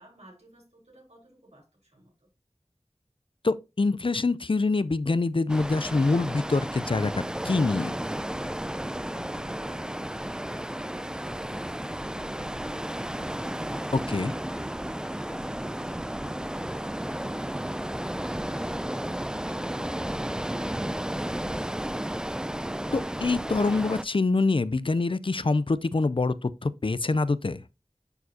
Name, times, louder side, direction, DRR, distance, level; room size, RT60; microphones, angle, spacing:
voice 1, 0.0-2.3, equal, 85° right, 4.7 m, -53 dB
voice 2, 3.4-8.0 14.1-14.3 22.9-27.6, left 3 dB, 50° left, 0.5 m, -25 dB
sound 1, 5.5-24.0, right 1 dB, 5° right, 0.3 m, -33 dB
10.5 x 4.6 x 2.8 m
wide cardioid pair, 45°, 11 cm